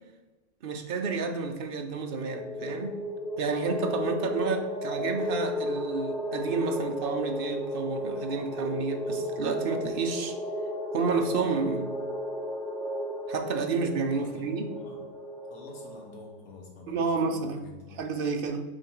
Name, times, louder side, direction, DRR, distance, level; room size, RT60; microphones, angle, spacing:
voice 1, 0.6-3.0 3.4-10.4 10.9-11.9 13.3-14.7 16.9-17.6 18.0-18.6, right 4 dB, 55° right, 5 dB, 0.7 m, -30 dB
sound 1, 2.1-16.4, equal, 5° left, 0.4 m, -34 dB
voice 2, 14.2-15.1 15.5-18.0, left 3 dB, 85° left, 0 dB, 1.7 m, -48 dB
6.3 x 3.7 x 4.6 m, 1.2 s
omnidirectional pair, 1.5 m